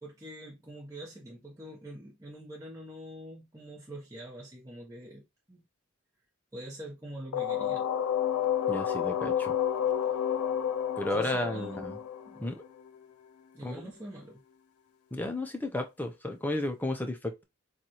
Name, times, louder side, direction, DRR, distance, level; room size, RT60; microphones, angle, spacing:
voice 1, 0.0-5.6 6.5-7.8 11.1-12.6 13.5-14.4, right 1 dB, 15° right, 1.1 m, -45 dB
sound 1, 7.3-13.0, left 9 dB, 90° left, 0.5 m, -30 dB
voice 2, 8.7-9.5 11.0-11.9 12.4-12.7 13.6-13.9 15.1-17.4, left 1 dB, 10° left, 0.6 m, -33 dB
7.1 x 2.4 x 3.0 m
head